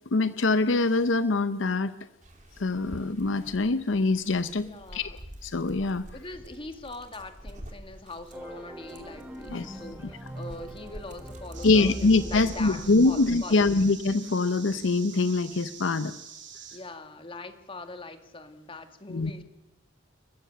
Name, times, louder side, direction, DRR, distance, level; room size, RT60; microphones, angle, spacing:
voice 1, 0.1-1.9 2.6-5.2 5.4-6.0 9.5-9.8 11.6-16.1 19.1-19.3, left 3 dB, 75° left, 13 dB, 0.7 m, -24 dB
Dog, 2.2-13.6, equal, 40° right, 2.7 m, -47 dB
voice 2, 4.6-5.2 6.1-13.9 16.7-19.4, left 2 dB, 30° left, 8 dB, 2.0 m, -42 dB
sound 1, 8.3-13.4, equal, 10° right, 3.3 m, -42 dB
sound 2, 11.5-16.8, right 7 dB, 70° right, 6.4 m, -45 dB
29.5 x 15.0 x 6.9 m, 0.90 s
head